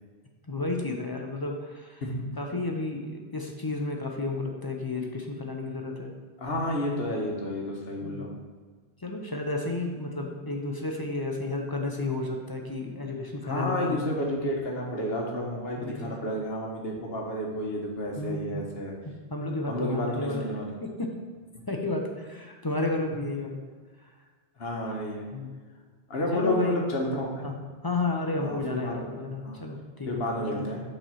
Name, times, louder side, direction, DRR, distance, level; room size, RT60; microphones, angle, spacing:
voice 1, 0.5-2.0 2.4-6.1 8.0-8.3 9.0-14.0 15.8-16.3 18.2-18.7 19.3-20.4 20.8-21.1 21.7-23.6 25.3-25.5 26.3-26.8 27.4-27.6 27.8-30.6, left 2 dB, 30° left, 1 dB, 0.5 m, -32 dB
voice 2, 6.4-8.3 13.4-18.9 19.7-20.7 24.6-25.2 26.1-27.5 28.3-29.6 30.1-30.8, left 1 dB, 55° left, -1 dB, 1.3 m, -31 dB
5.5 x 4.4 x 5.6 m, 1.5 s
omnidirectional pair, 1.2 m